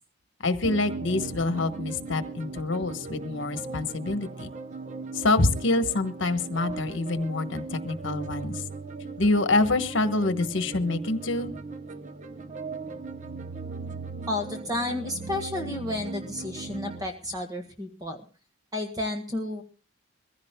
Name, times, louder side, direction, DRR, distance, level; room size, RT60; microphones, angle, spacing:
voice 1, 0.4-4.5 5.1-8.6 9.2-11.5, left 2 dB, 65° left, 9 dB, 1.2 m, -26 dB
sound 1, 0.6-17.1, right 4 dB, 35° right, 0.7 m, -38 dB
voice 2, 14.3-18.2 18.7-19.6, left 1 dB, 20° right, 4 dB, 1.6 m, -31 dB
23.0 x 15.5 x 2.2 m, 0.37 s
head